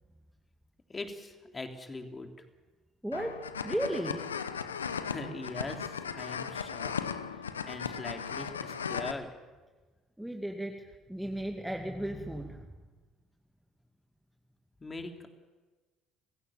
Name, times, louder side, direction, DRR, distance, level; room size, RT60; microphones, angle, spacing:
voice 1, 0.9-2.4 5.1-6.9 7.3-9.3 14.8-15.3, left 2 dB, 25° left, 5 dB, 3.4 m, -41 dB
voice 2, 3.0-4.2 7.4-7.5 10.2-12.7, right 1 dB, 5° right, 3 dB, 2.3 m, -35 dB
sound 1, 3.1-9.1, left 6 dB, 90° left, 0.9 m, -37 dB
28.5 x 16.0 x 7.3 m, 1.3 s
hypercardioid pair, 60°, 0 cm